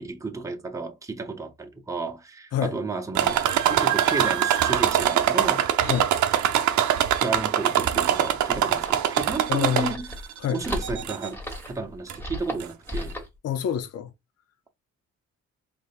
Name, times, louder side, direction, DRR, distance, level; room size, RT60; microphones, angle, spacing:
voice 1, 0.0-3.4 3.7-5.7 7.0-10.2 10.5-11.4 11.7-13.2, right 3 dB, 10° right, 0.8 m, -32 dB
sound 1, 3.1-10.2 10.7-11.3 12.1-12.2 12.6-12.7, right 10 dB, 70° right, 0.7 m, -23 dB
sound 2, 8.2-13.4, equal, 5° left, 1.4 m, -35 dB
voice 2, 9.5-9.9 10.4-10.6 13.4-14.1, left 9 dB, 55° left, 0.6 m, -27 dB
5.0 x 3.3 x 2.5 m
cardioid pair, 90°, 30 cm